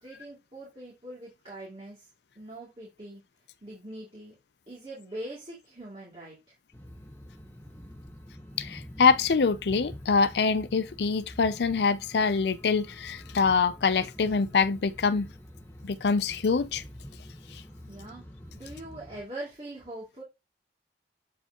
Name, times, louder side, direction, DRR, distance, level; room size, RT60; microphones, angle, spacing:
voice 1, 0.0-2.1 2.4-3.2 3.6-4.3 4.7-6.3 17.9-18.2 18.5-20.2, right 1 dB, 30° right, 2.6 m, -42 dB
sound 1, 6.7-19.2, equal, 10° left, 1.0 m, -47 dB
voice 2, 8.6-15.3 15.8-16.8 17.5-17.6, left 5 dB, 70° left, 0.5 m, -25 dB
7.9 x 4.7 x 2.9 m
head